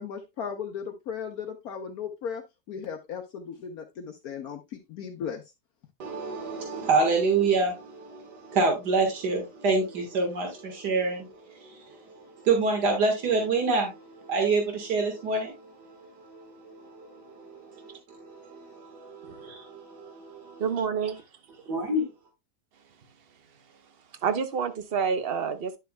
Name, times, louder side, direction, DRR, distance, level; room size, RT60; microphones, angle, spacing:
voice 1, 0.0-5.4, left 7 dB, 65° left, 1.3 m, -36 dB
voice 2, 6.0-20.6 21.7-22.1, right 3 dB, 90° right, 2.2 m, -28 dB
voice 3, 20.6-21.2 24.2-25.8, right 6 dB, 45° right, 1.0 m, -28 dB
10.5 x 7.1 x 2.2 m
omnidirectional pair, 1.7 m